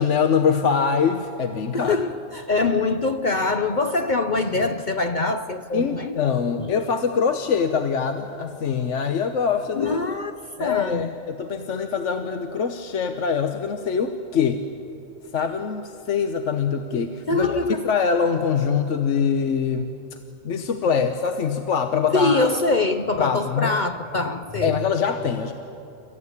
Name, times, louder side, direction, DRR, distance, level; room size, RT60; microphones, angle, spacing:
voice 1, 0.0-2.0 5.7-10.0 10.6-14.6 15.3-19.9 20.4-22.5 23.2-23.8 24.6-25.5, left 6 dB, 65° left, 1.2 m, -23 dB
voice 2, 1.7-6.2 6.5-6.7 9.7-11.1 17.3-17.8 22.1-24.8, left 3 dB, 45° left, 0.7 m, -24 dB
29.0 x 15.0 x 9.8 m
omnidirectional pair, 1.4 m